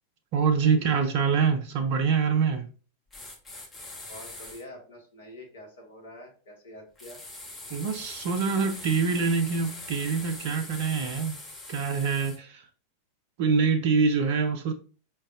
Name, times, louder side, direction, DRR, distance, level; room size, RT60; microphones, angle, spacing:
voice 1, 0.3-2.7 7.7-11.3 11.7-12.6 13.4-14.7, right 5 dB, 45° right, 0.5 m, -25 dB
sound 1, 3.1-4.6 7.0-12.4, left 2 dB, 15° left, 0.8 m, -42 dB
voice 2, 4.1-7.2, left 1 dB, 60° left, 1.1 m, -46 dB
4.9 x 2.3 x 2.4 m
figure-of-eight pair, 90°, 0 cm